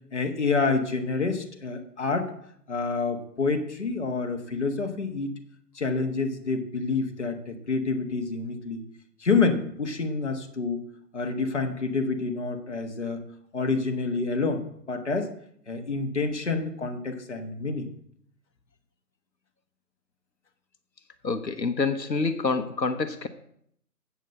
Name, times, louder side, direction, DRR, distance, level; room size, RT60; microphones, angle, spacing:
voice 1, 0.1-2.3 2.7-5.3 5.7-8.8 9.2-10.8 11.1-13.2 13.5-15.3 15.7-17.9, left 4 dB, 45° left, 4 dB, 1.4 m, -28 dB
voice 2, 21.2-23.3, left 4 dB, 90° left, 9 dB, 1.1 m, -27 dB
8.2 x 6.5 x 7.6 m, 0.69 s
figure-of-eight pair, 160°, 49 cm